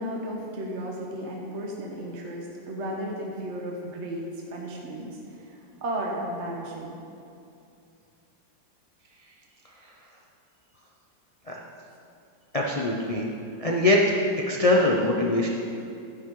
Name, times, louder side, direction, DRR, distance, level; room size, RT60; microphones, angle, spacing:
voice 1, 0.0-5.1 5.4-7.0, right 1 dB, 40° right, -2 dB, 1.4 m, -34 dB
voice 2, 12.5-13.3 13.6-14.0 14.5-15.5, left 2 dB, 70° left, -2 dB, 0.3 m, -22 dB
13.0 x 10.5 x 3.8 m, 2.6 s
omnidirectional pair, 2.0 m